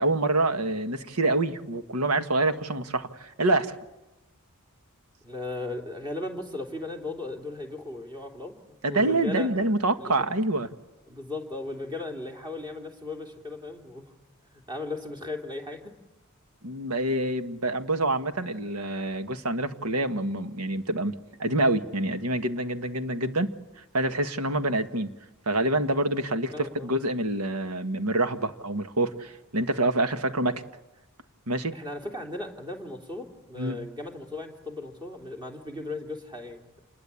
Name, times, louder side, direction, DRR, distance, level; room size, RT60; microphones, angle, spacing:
voice 1, 0.0-3.7 8.8-10.7 16.6-21.1 21.4-23.5 23.9-25.1 25.5-30.6 31.5-31.7 33.6-33.8, right 2 dB, 90° right, 9 dB, 1.6 m, -26 dB
voice 2, 5.2-9.5 10.0-10.3 11.1-14.1 14.5-15.9 26.5-26.9 31.7-36.8, left 2 dB, 20° right, 3 dB, 3.2 m, -37 dB
27.5 x 21.0 x 8.4 m, 1.0 s
head